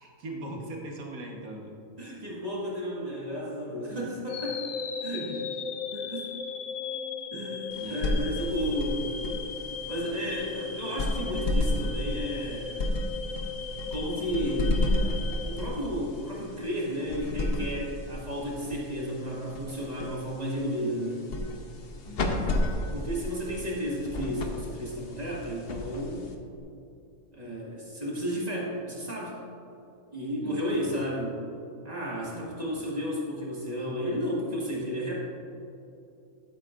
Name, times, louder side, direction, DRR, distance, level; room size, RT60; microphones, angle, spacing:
voice 1, 0.0-1.7 3.9-4.0 5.2-5.5 7.8-8.0 8.5-8.7 22.0-22.7 30.4-31.0 32.1-32.5, right 1 dB, 75° right, 0 dB, 1.7 m, -41 dB
voice 2, 2.0-4.6 5.0-5.3 5.9-6.3 7.3-9.2 9.9-12.9 13.9-15.2 15.5-21.2 22.9-26.3 27.3-29.3 30.1-31.4 31.8-35.1, equal, 30° right, -5 dB, 1.8 m, -33 dB
sound 1, 4.3-16.4, left 5 dB, 85° left, 1.1 m, -37 dB
sound 2, 7.7-26.6, left 1 dB, 50° left, 0.9 m, -33 dB
13.0 x 8.2 x 2.5 m, 2.8 s
omnidirectional pair, 1.5 m